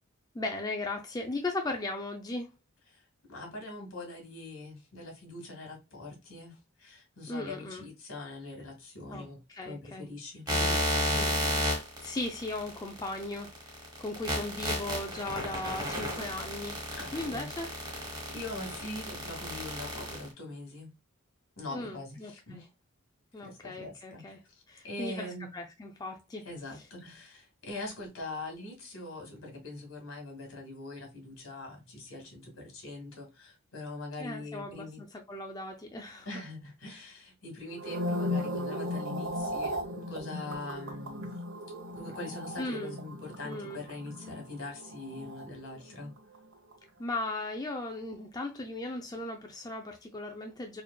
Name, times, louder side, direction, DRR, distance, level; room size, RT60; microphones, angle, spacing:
voice 1, 0.3-2.5 7.3-7.8 9.1-10.1 11.1-11.6 12.0-16.8 17.1-17.7 21.7-22.6 23.3-24.4 24.7-26.5 34.2-36.3 42.6-43.0 43.4-43.8 47.0-50.8, left 2 dB, 20° left, 0.4 m, -37 dB
voice 2, 3.3-9.4 9.6-11.3 16.9-17.5 18.3-20.9 21.6-22.6 23.4-25.5 26.4-35.0 36.3-41.3 41.7-46.1, left 2 dB, 75° left, 1.9 m, -43 dB
sound 1, 10.5-20.3, equal, 20° right, 1.4 m, -32 dB
sound 2, 37.7-46.1 46.3-46.7, left 1 dB, 85° right, 1.2 m, -37 dB
4.2 x 3.1 x 2.2 m
head